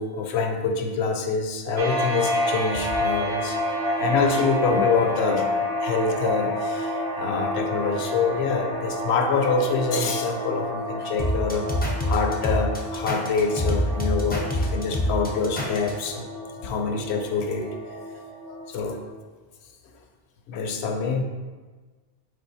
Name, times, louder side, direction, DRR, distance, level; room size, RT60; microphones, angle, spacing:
voice 1, 0.0-3.6 4.0-5.5 5.8-11.7 12.1-16.2 16.6-17.7 18.5-19.0 20.5-21.2, left 4 dB, 70° left, 3 dB, 0.8 m, -25 dB
sound 1, 1.8-19.0, left 1 dB, 55° right, 0.8 m, -29 dB
sound 2, 11.2-16.1, equal, 15° left, 0.3 m, -25 dB
5.4 x 3.7 x 2.7 m, 1.4 s
omnidirectional pair, 1.2 m